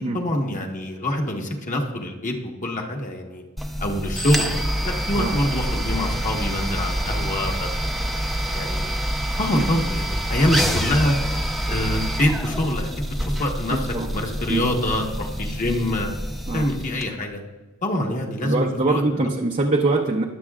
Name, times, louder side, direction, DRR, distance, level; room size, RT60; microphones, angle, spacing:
voice 1, 0.1-3.4 3.8-4.5 4.8-8.9 9.4-11.1 11.7-13.9 14.1-16.1 16.5-17.4 17.8-19.3, left 1 dB, 35° left, 1 dB, 1.4 m, -25 dB
sound 1, 3.6-17.1, equal, ahead, 0.7 m, -27 dB
voice 2, 13.7-14.1 14.5-14.6 16.5-16.7 18.4-20.2, right 2 dB, 35° right, 0 dB, 0.7 m, -23 dB
21.5 x 7.7 x 2.4 m, 1.2 s
head